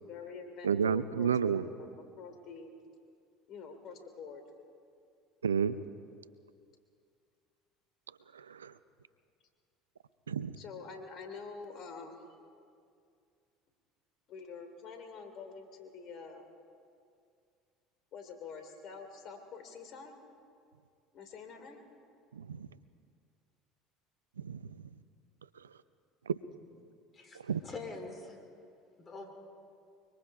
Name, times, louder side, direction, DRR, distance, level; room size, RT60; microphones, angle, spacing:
voice 1, 0.0-1.9 2.2-2.7 3.5-4.4 10.6-12.2 14.3-16.4 18.1-20.1 21.1-21.8, left 5 dB, 55° left, 6 dB, 3.0 m, -46 dB
voice 2, 0.6-1.7 5.4-5.8 8.3-8.7 10.3-10.6 22.3-22.7 24.4-24.7 26.3-26.4 27.5-27.6, right 7 dB, 90° right, 15 dB, 0.5 m, -31 dB
voice 3, 27.1-28.4 29.0-29.3, left 3 dB, 35° left, 4 dB, 4.3 m, -44 dB
24.5 x 24.0 x 4.8 m, 2.3 s
hypercardioid pair, 70°, 0 cm